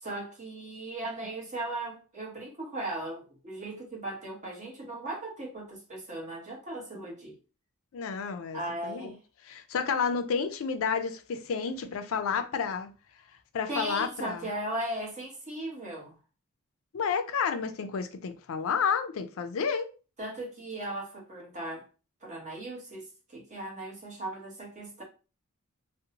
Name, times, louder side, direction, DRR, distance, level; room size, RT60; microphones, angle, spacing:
voice 1, 0.0-7.3 8.5-9.2 13.7-16.1 20.2-21.9 22.2-25.0, right 1 dB, 35° right, 0.9 m, -37 dB
voice 2, 7.9-9.1 9.4-12.9 13.5-14.5 16.9-19.9, left 6 dB, 65° left, 0.4 m, -30 dB
2.6 x 2.0 x 2.8 m
head